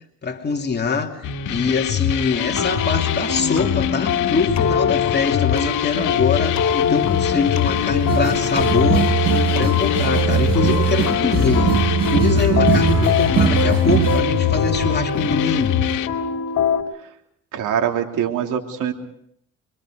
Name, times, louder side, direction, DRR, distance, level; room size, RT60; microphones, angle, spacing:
voice 1, 0.2-15.8, left 4 dB, 35° left, 2 dB, 3.0 m, -24 dB
sound 1, 1.2-16.1, left 9 dB, 80° left, 1.8 m, -24 dB
sound 2, 2.4-16.8, left 7 dB, 65° left, 3.0 m, -23 dB
sound 3, 8.1-14.2, right 8 dB, 60° right, 4.2 m, -21 dB
voice 2, 17.5-18.9, right 9 dB, 85° right, 3 dB, 3.3 m, -23 dB
26.0 x 24.5 x 5.2 m, 0.68 s
cardioid pair, 90°, 30 cm